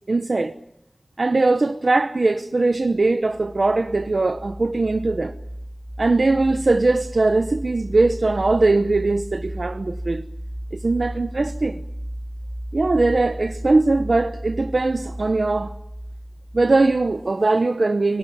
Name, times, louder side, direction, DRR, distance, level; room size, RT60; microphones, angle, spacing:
voice 1, 0.1-0.6 1.2-5.4 6.0-10.2 10.7-11.8 12.7-15.7 16.5-18.2, right 3 dB, 80° right, 0.9 m, -20 dB
sound 1, 2.9-17.4, equal, 20° right, 1.9 m, -35 dB
22.0 x 20.0 x 9.3 m
wide cardioid pair, 55°, 0 cm